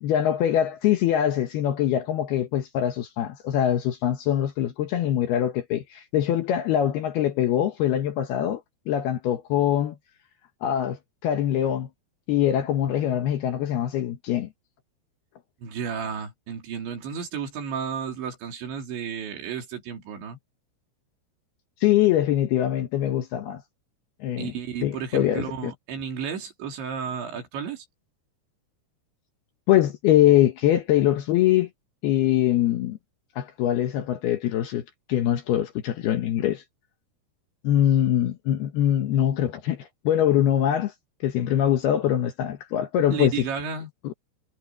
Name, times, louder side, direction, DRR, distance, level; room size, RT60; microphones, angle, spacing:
voice 1, 0.0-8.6 8.9-10.0 10.6-11.9 12.3-14.5 21.8-23.6 24.2-24.5 24.8-25.7 29.7-31.7 32.0-33.0 33.4-34.8 35.1-36.6 37.6-40.9 41.2-43.5 44.0-44.1, left 11 dB, 70° left, 2.7 m, -23 dB
voice 2, 15.6-20.4 24.4-27.9 43.1-43.9, right 7 dB, 70° right, 5.8 m, -32 dB
omnidirectional pair, 5.6 m